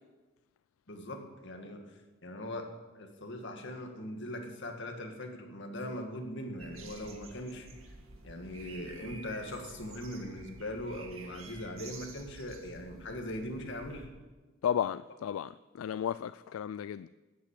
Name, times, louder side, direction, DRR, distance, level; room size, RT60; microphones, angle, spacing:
voice 1, 0.9-1.9 2.2-2.7 2.9-7.7 8.2-14.1, left 1 dB, 60° left, 2.0 m, -40 dB
sound 1, 6.6-14.1, right 3 dB, 85° right, 1.9 m, -50 dB
voice 2, 14.6-17.1, left 9 dB, 80° left, 0.3 m, -33 dB
12.5 x 8.5 x 8.3 m
head